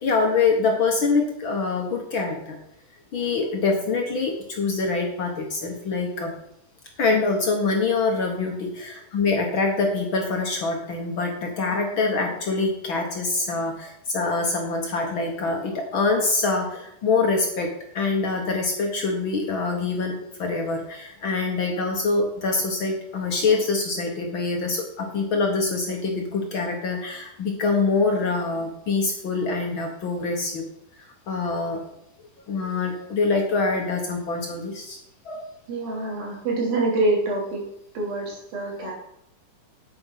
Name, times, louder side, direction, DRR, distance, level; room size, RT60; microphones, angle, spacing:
voice 1, 0.0-2.6 3.1-6.3 7.0-17.7 17.9-30.6 31.3-31.8 32.5-35.0 35.2-35.4 38.8-38.9, left 3 dB, 55° left, 2 dB, 1.4 m, -25 dB
voice 2, 35.7-37.6 37.9-38.9, right 2 dB, 85° right, -2 dB, 4.7 m, -25 dB
8.8 x 8.1 x 5.8 m, 0.76 s
omnidirectional pair, 3.9 m